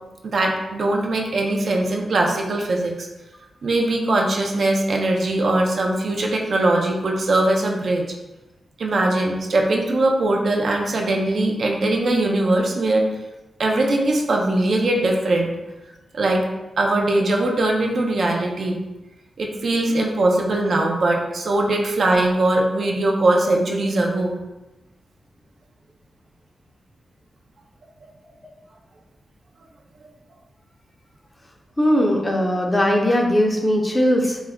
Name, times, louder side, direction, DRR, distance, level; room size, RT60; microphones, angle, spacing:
voice 1, 0.2-3.1 3.6-8.0 8.8-13.1 13.6-15.5 16.1-16.4 16.8-18.8 19.4-24.4, right 2 dB, 65° right, 1 dB, 0.4 m, -21 dB
voice 2, 31.8-34.4, equal, 20° left, 0 dB, 0.5 m, -19 dB
2.3 x 2.1 x 3.5 m, 1.0 s
cardioid pair, 70°, 0 cm